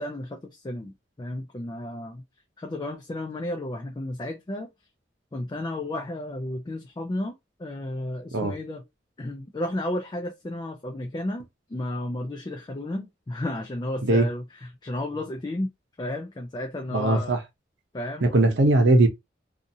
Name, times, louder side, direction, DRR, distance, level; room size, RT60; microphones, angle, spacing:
voice 1, 0.0-2.2 2.6-4.7 5.3-8.8 9.2-15.7 16.0-17.4 17.9-18.4, left 1 dB, 25° left, 0.4 m, -33 dB
voice 2, 16.9-17.4 18.2-19.1, right 2 dB, 90° right, 0.7 m, -19 dB
2.7 x 2.4 x 2.6 m
head